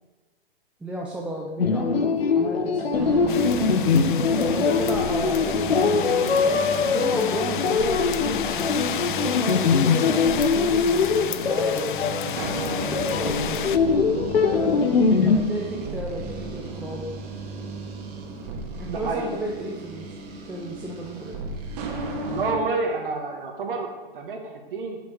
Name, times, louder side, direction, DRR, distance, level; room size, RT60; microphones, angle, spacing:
voice 1, 0.8-2.0 2.4-3.5 4.4-13.7 14.4-17.1 18.8-20.2 20.5-21.4, right 1 dB, 5° right, -3 dB, 0.6 m, -34 dB
sound 1, 1.6-15.4, left 5 dB, 85° left, 1.1 m, -22 dB
sound 2, 2.9-22.5, right 2 dB, 45° right, 1.9 m, -34 dB
sound 3, 3.3-13.8, left 10 dB, 60° left, 0.6 m, -32 dB
voice 2, 18.8-19.3 22.3-25.0, right 3 dB, 65° right, 2 dB, 1.6 m, -29 dB
7.6 x 7.2 x 6.3 m, 1.2 s
hypercardioid pair, 140°, 29 cm